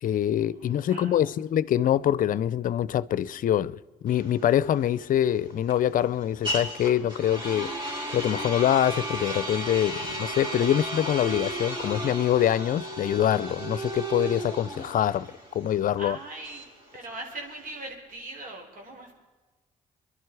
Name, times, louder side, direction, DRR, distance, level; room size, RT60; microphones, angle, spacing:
voice 1, 0.0-7.7 8.1-15.3 15.5-16.2, left 11 dB, 60° left, 0.6 m, -25 dB
voice 2, 0.6-1.3 16.0-16.6 16.9-19.1, right 2 dB, 60° right, 5.0 m, -40 dB
sound 1, 4.1-17.9, right 1 dB, 30° right, 5.6 m, -35 dB
25.0 x 11.5 x 4.8 m
supercardioid pair, 60°, 16 cm